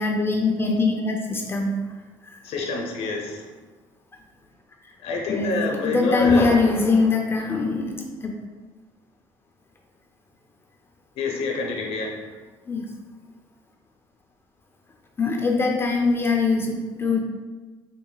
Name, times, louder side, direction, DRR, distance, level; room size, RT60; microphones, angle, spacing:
voice 1, 0.0-1.7 2.2-2.4 4.8-4.9 5.3-8.3 12.7-12.9 15.2-17.2, left 3 dB, 25° left, 1 dB, 0.4 m, -22 dB
voice 2, 2.4-3.5 5.0-6.5 11.2-12.2, left 3 dB, 80° left, 0 dB, 0.7 m, -27 dB
3.9 x 2.1 x 3.8 m, 1.3 s
cardioid pair, 105°, 10 cm